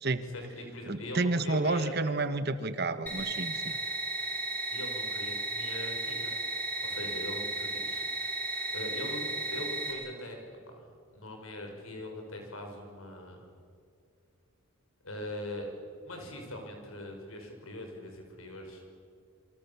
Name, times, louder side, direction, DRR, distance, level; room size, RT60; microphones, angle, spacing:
voice 1, 0.2-1.9 4.7-6.3 6.8-8.0 8.7-13.4 15.0-15.7 16.0-18.8, left 1 dB, 80° left, 3 dB, 5.7 m, -41 dB
voice 2, 0.9-3.7, right 3 dB, 50° right, 11 dB, 1.3 m, -30 dB
sound 1, 3.1-9.9, right 2 dB, 10° left, 5.4 m, -34 dB
27.5 x 24.5 x 7.1 m, 2.3 s
head